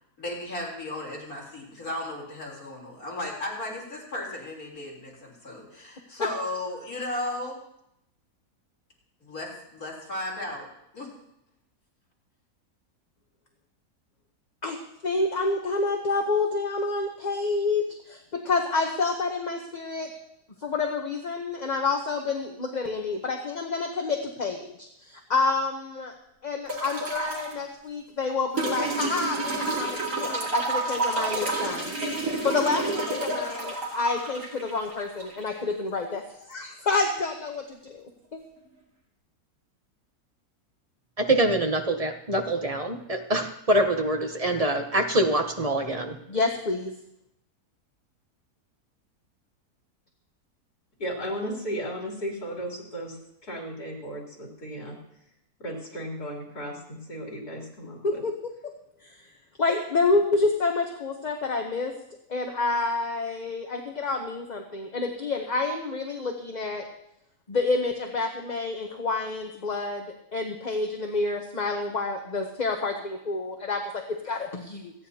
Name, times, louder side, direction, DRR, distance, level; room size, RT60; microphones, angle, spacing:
voice 1, 0.2-7.5 9.2-10.7 10.9-11.1, left 1 dB, 65° left, -4 dB, 4.2 m, -35 dB
voice 2, 15.0-20.1 20.6-26.1 26.4-32.0 32.4-38.0 38.3-38.4 46.3-46.9 58.0-58.7 59.0-59.2 59.6-61.9 62.3-66.8 67.5-70.1 70.3-74.9, left 3 dB, 30° left, 2 dB, 1.0 m, -28 dB
sound 1, 26.7-27.5 28.6-35.6 36.9-37.0, right 2 dB, 55° right, 2.9 m, -29 dB
voice 3, 41.2-46.2, right 1 dB, 30° right, 5 dB, 0.9 m, -25 dB
voice 4, 51.0-53.2 53.4-55.0 55.6-58.2, equal, 80° left, -2 dB, 3.8 m, -35 dB
28.0 x 9.8 x 2.8 m, 0.78 s
omnidirectional pair, 1.6 m